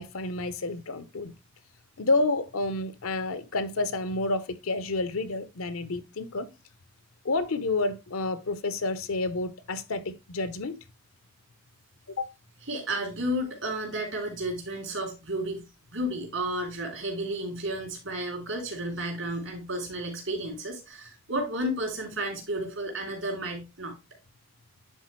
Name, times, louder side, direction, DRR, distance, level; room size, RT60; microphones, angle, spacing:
voice 1, 0.0-1.3 2.0-6.5 7.2-10.8 12.2-12.3, left 2 dB, 85° left, 0.8 m, -29 dB
voice 2, 12.7-15.6 15.9-23.9, right 1 dB, 70° right, 3.3 m, -32 dB
10.0 x 4.1 x 3.1 m
head